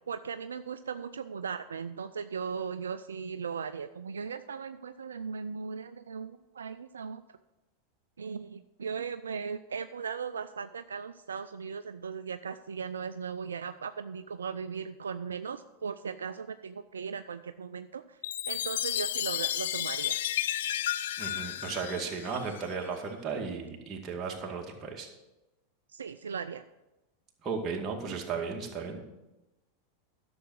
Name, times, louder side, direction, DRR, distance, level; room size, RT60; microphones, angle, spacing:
voice 1, 0.0-7.2 8.2-18.2 18.5-20.2 25.9-26.6, right 6 dB, 80° right, 11 dB, 0.4 m, -38 dB
Chime, 18.2-22.8, left 12 dB, 70° left, 0.4 m, -32 dB
voice 2, 21.2-25.1 27.4-29.0, right 5 dB, 30° right, 1 dB, 2.2 m, -35 dB
11.5 x 6.9 x 6.4 m, 1.0 s
hypercardioid pair, 90°, 0 cm